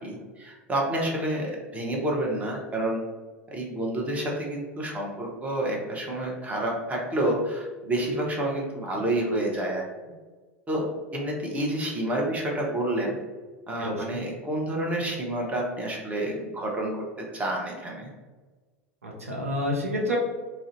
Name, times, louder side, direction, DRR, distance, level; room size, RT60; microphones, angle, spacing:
voice 1, 0.0-3.0 3.5-9.8 10.7-10.9 11.1-13.2 13.7-17.0 17.3-18.1, right 1 dB, 20° right, -1 dB, 0.8 m, -29 dB
voice 2, 13.8-14.2 19.0-20.2, equal, 90° right, -2 dB, 0.6 m, -29 dB
2.6 x 2.1 x 3.8 m, 1.3 s
figure-of-eight pair, 80°, 7 cm